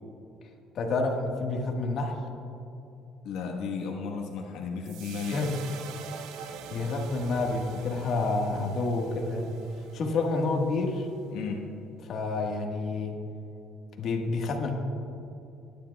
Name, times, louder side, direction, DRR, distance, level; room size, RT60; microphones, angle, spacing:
voice 1, 0.7-2.2 5.3-5.6 6.7-9.5 9.9-11.1 12.0-13.2 14.0-14.7, left 3 dB, 55° left, 1 dB, 1.5 m, -29 dB
voice 2, 3.2-5.5 11.3-11.7, left 5 dB, 85° left, 1 dB, 1.2 m, -34 dB
sound 1, 4.8-11.2, right 7 dB, 85° right, 0.7 m, -45 dB
20.5 x 10.0 x 2.3 m, 2.8 s
cardioid pair, 135°, 0 cm